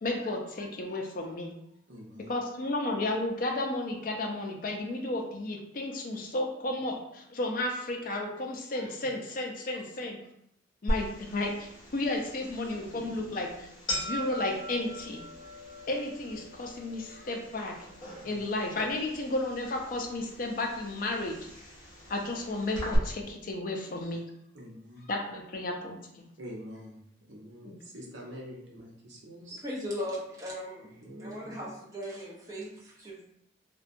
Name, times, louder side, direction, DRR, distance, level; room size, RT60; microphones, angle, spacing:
voice 1, 0.0-1.5 2.3-10.2 10.8-15.2 15.9-17.8 18.2-21.3 22.1-24.3 25.1-26.3 27.6-27.8, left 2 dB, 45° left, 1 dB, 0.4 m, -33 dB
voice 2, 1.9-2.3 18.2-18.3 24.5-25.1 26.4-26.9 27.3-29.6 31.0-31.3, equal, 75° right, -2 dB, 0.7 m, -45 dB
sound 1, 10.9-23.0, equal, 20° left, 0.7 m, -40 dB
voice 3, 29.6-30.9 31.2-33.2, equal, 15° right, -5 dB, 0.6 m, -38 dB
2.6 x 2.1 x 2.5 m, 0.76 s
head